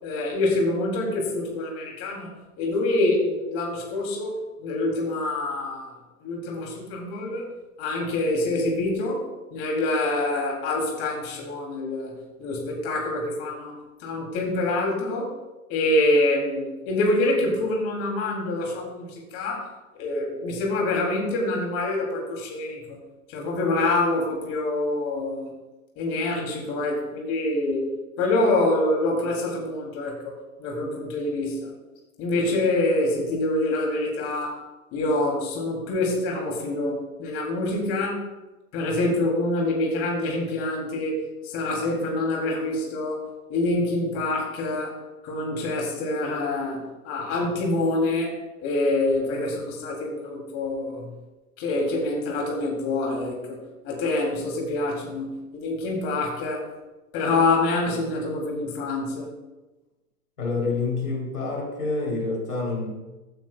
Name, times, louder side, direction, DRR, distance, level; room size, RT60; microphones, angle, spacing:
voice 1, 0.0-2.3 2.6-5.9 6.2-7.4 7.8-9.2 9.5-12.1 12.4-13.7 14.0-15.3 15.7-19.7 19.9-23.0 23.3-25.5 26.0-27.8 28.2-31.7 32.2-34.5 34.9-38.2 38.7-43.2 43.5-44.9 45.2-51.1 51.6-53.6 53.8-56.7 57.1-59.3, left 2 dB, 35° left, -1 dB, 3.1 m, -26 dB
voice 2, 60.4-62.9, left 3 dB, 90° left, -2 dB, 3.8 m, -27 dB
15.0 x 9.2 x 2.4 m, 1.1 s
hypercardioid pair, 120°, 44 cm